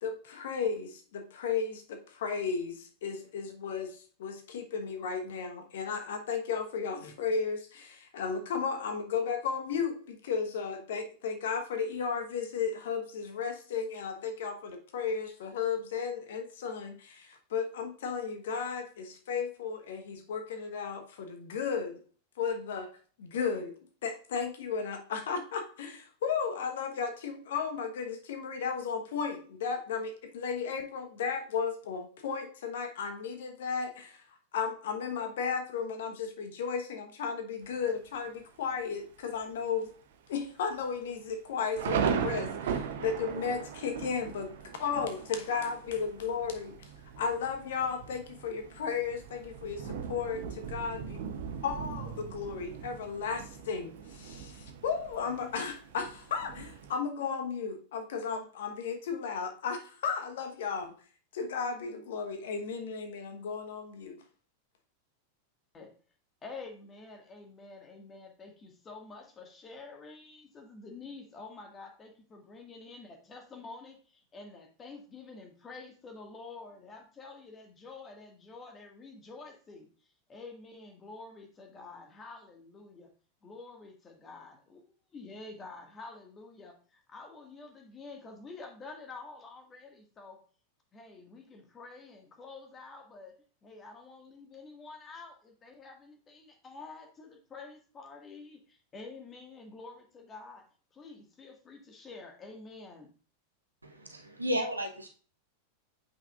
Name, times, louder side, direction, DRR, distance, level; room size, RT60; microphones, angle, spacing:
voice 1, 0.0-22.0 22.4-22.9 23.2-23.8 24.0-34.2 34.5-39.9 40.3-46.9 47.2-51.2 51.6-60.9 61.3-64.2, left 6 dB, 60° left, 6 dB, 1.1 m, -34 dB
Thunder, 37.6-38.2 38.7-38.8 39.1-39.5 39.9-40.0 40.7-56.9, right 7 dB, 60° right, 0.8 m, -38 dB
voice 2, 66.4-79.9 80.3-83.1 83.4-90.4 90.9-93.3 93.6-100.6 100.9-103.1, left 3 dB, 20° left, 3 dB, 1.8 m, -48 dB
voice 3, 103.8-105.1, equal, 80° right, 4 dB, 1.0 m, -33 dB
8.3 x 5.8 x 2.4 m, 0.40 s
figure-of-eight pair, 90°, 0 cm